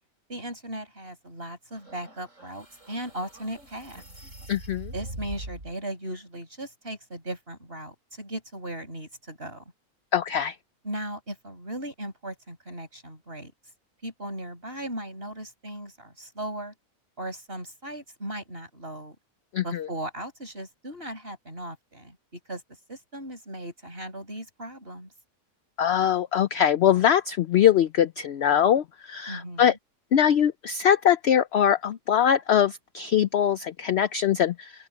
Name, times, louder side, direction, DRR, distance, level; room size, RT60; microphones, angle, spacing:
voice 1, 0.3-4.0 4.9-9.6 10.8-13.5 14.0-16.7 17.2-19.2 19.6-22.6 22.9-25.1 29.3-29.8, right 1 dB, 40° right, 7.3 m, -37 dB
sound 1, 1.7-5.7, right 1 dB, 55° right, 7.3 m, -43 dB
voice 2, 4.5-4.9 10.1-10.5 19.5-19.9 25.8-29.7 30.1-34.7, left 9 dB, 65° left, 0.7 m, -22 dB
open air
omnidirectional pair, 1.6 m